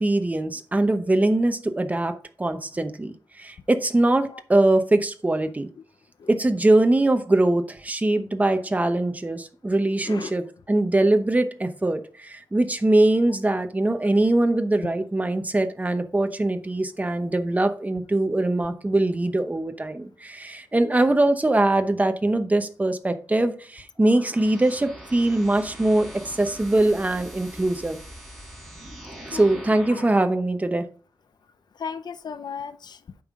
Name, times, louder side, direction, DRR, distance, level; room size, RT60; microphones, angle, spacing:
voice 1, 0.0-5.7 6.3-28.0 29.3-30.9, right 2 dB, 20° right, 8 dB, 0.9 m, -22 dB
voice 2, 10.0-10.3 20.8-21.1 29.3-29.6 29.9-30.0 31.8-33.0, left 6 dB, 75° left, 13 dB, 0.6 m, -36 dB
sound 1, 24.0-30.4, right 1 dB, 5° right, 4.2 m, -42 dB
8.6 x 5.6 x 3.6 m, 0.39 s
wide cardioid pair, 130°, 7 cm